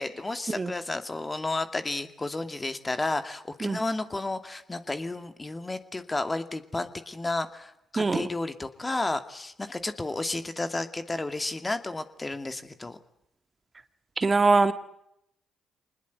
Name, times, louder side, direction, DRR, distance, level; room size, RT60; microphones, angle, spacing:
voice 1, 0.0-13.0, left 2 dB, 25° left, 9 dB, 2.4 m, -32 dB
voice 2, 14.2-14.7, right 3 dB, 35° right, 11 dB, 1.7 m, -22 dB
25.5 x 20.5 x 9.4 m, 0.78 s
hypercardioid pair, 45°, 0 cm